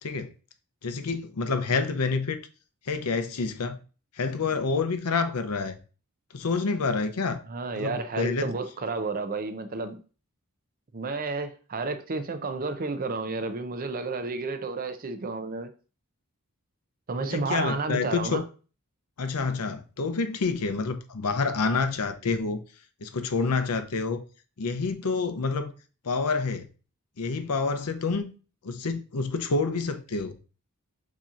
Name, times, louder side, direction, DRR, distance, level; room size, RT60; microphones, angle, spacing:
voice 1, 0.8-2.4 2.9-3.8 4.2-5.8 6.3-7.4 7.8-8.5 17.2-18.4 19.2-22.6 23.0-24.2 24.6-25.7 26.0-26.7 27.2-28.3 28.6-30.4, left 4 dB, 85° left, 0.7 m, -28 dB
voice 2, 7.5-10.0 10.9-15.7 17.1-18.4, right 3 dB, 40° right, 0.6 m, -31 dB
7.2 x 2.9 x 2.5 m
head